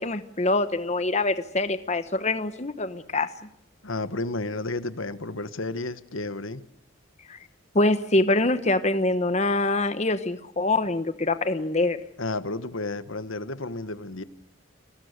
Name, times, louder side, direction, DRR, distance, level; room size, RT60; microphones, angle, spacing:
voice 1, 0.0-3.3 7.3-7.4 7.7-12.0, left 2 dB, 35° left, 11 dB, 1.0 m, -24 dB
voice 2, 3.8-6.6 12.2-14.2, left 2 dB, 80° left, 13 dB, 1.3 m, -32 dB
30.0 x 20.5 x 6.7 m, 0.74 s
head